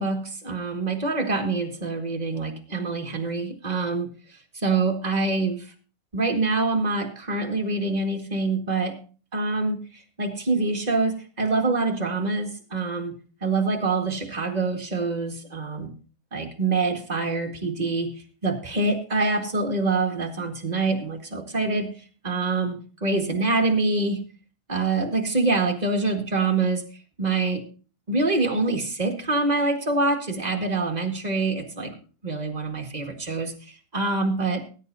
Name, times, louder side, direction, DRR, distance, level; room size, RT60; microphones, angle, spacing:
voice 1, 0.0-4.1 4.5-5.7 6.1-9.0 9.3-13.1 13.4-15.9 16.3-18.1 18.4-21.9 22.2-24.3 24.7-26.9 27.2-27.6 28.1-31.9 32.2-34.6, right 3 dB, 25° right, 2 dB, 1.9 m, -25 dB
19.0 x 9.7 x 2.7 m, 0.36 s
omnidirectional pair, 1.8 m